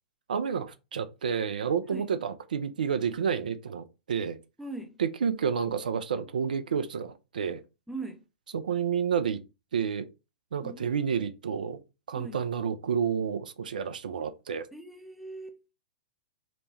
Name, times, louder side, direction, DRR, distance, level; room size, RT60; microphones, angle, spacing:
voice 1, 0.3-4.4 5.0-7.6 8.5-9.4 9.7-10.1 10.5-11.8 12.1-14.7, right 7 dB, 70° right, 0.3 m, -30 dB
voice 2, 4.6-5.0 7.9-8.2 10.6-10.9 12.2-12.4 14.7-15.6, right 2 dB, ahead, 0.5 m, -40 dB
3.0 x 2.1 x 3.1 m
figure-of-eight pair, 105°, 5 cm